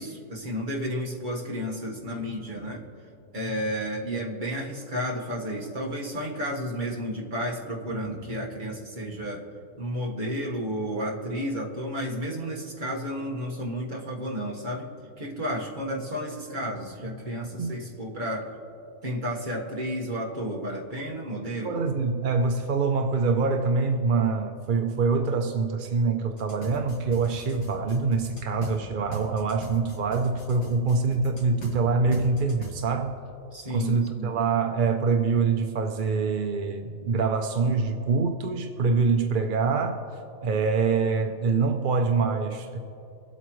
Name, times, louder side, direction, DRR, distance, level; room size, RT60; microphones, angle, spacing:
voice 1, 0.0-2.8 3.3-9.5 9.8-18.5 19.0-21.8 33.5-34.4, equal, 35° right, -2 dB, 1.6 m, -32 dB
voice 2, 21.6-33.2 33.7-40.0 40.4-42.8, right 4 dB, 55° right, 5 dB, 0.6 m, -25 dB
sound 1, 26.4-28.7 29.1-31.7 32.1-32.7, right 1 dB, 65° left, 2.4 m, -39 dB
23.5 x 8.2 x 3.1 m, 2.7 s
omnidirectional pair, 1.5 m